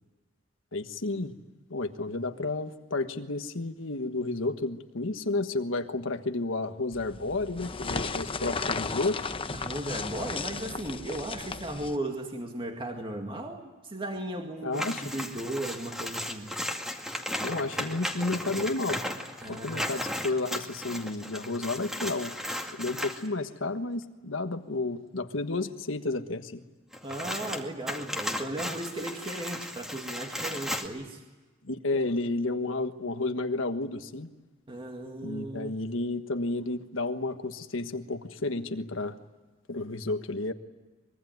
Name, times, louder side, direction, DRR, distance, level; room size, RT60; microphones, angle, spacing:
voice 1, 0.7-1.3 1.7-9.2 14.6-15.0 17.4-19.0 19.5-22.3 22.8-26.6 31.6-34.3 35.2-39.1 39.7-40.5, left 2 dB, 75° left, 7 dB, 1.4 m, -31 dB
sound 1, 6.9-12.0, left 4 dB, 25° left, 0.8 m, -35 dB
voice 2, 9.5-16.5 19.4-19.9 27.0-31.2 34.7-35.8, right 1 dB, 25° right, 3 dB, 2.1 m, -36 dB
sound 2, 14.7-23.3 26.9-30.9, left 1 dB, ahead, 2.1 m, -35 dB
24.0 x 23.0 x 9.4 m, 1.2 s
head